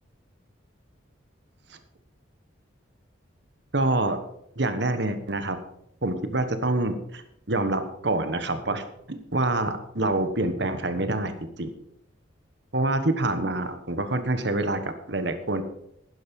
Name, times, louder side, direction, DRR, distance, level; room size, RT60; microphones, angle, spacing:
voice 1, 3.7-4.2 4.6-5.6 6.0-7.2 7.5-11.7 12.7-15.6, right 2 dB, 60° right, 10 dB, 1.3 m, -26 dB
11.5 x 10.5 x 5.4 m, 0.77 s
head